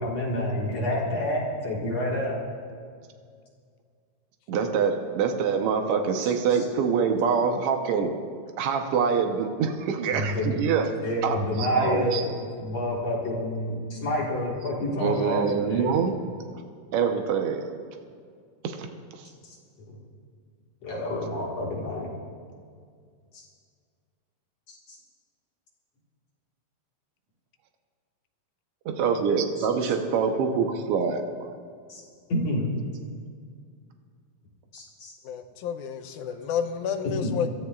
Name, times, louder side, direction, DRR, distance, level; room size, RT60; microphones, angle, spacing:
voice 1, 0.0-2.4 6.2-6.7 10.1-10.6 11.0-15.9 19.4-19.6 19.9-20.0 20.8-22.1 23.3-23.4 24.7-25.0 29.6-29.9 31.9-32.0 32.3-32.7 34.7-35.1 36.2-36.3 37.2-37.3, left 1 dB, 55° left, -3 dB, 2.7 m, -29 dB
voice 2, 4.5-8.1 8.6-10.9 11.2-11.4 11.7-12.2 15.0-16.1 16.9-17.6 18.6-18.9 29.0-31.2, right 6 dB, 75° right, 4 dB, 1.3 m, -25 dB
voice 3, 35.2-37.5, left 8 dB, 80° left, 7 dB, 2.0 m, -30 dB
25.0 x 13.5 x 2.4 m, 2.1 s
omnidirectional pair, 3.9 m